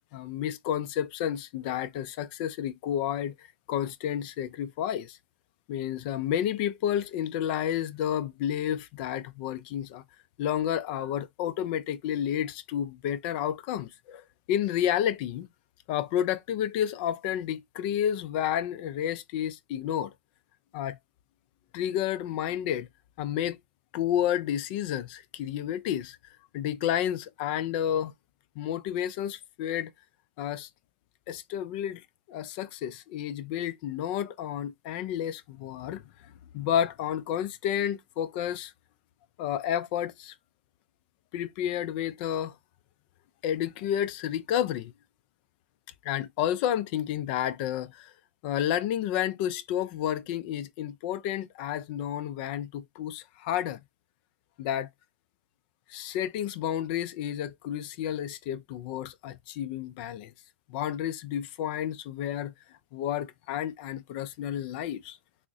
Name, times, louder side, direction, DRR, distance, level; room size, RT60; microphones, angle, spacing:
voice 1, 0.1-5.2 5.7-10.0 10.4-15.5 15.9-20.1 20.7-21.0 21.7-22.9 23.2-23.6 23.9-26.2 26.5-28.1 28.6-29.9 30.4-30.7 31.3-32.0 32.3-38.7 39.4-40.3 41.3-42.6 43.4-44.9 46.0-48.1 48.4-53.8 54.6-54.9 55.9-60.3 60.7-62.5 62.9-65.2, left 10 dB, 50° left, 0.5 m, -31 dB
3.7 x 2.1 x 3.4 m
hypercardioid pair, 120°, 6 cm